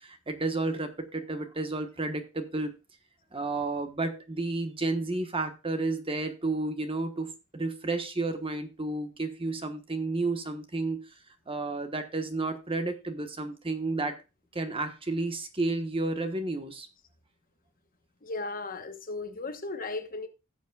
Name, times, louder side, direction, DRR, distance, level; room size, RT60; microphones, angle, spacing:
voice 1, 0.0-2.7 3.3-11.1 11.5-14.2 14.5-16.9, right 2 dB, 25° right, 1.2 m, -31 dB
voice 2, 18.2-20.3, left 3 dB, 40° left, 1.1 m, -36 dB
17.0 x 7.2 x 2.3 m
head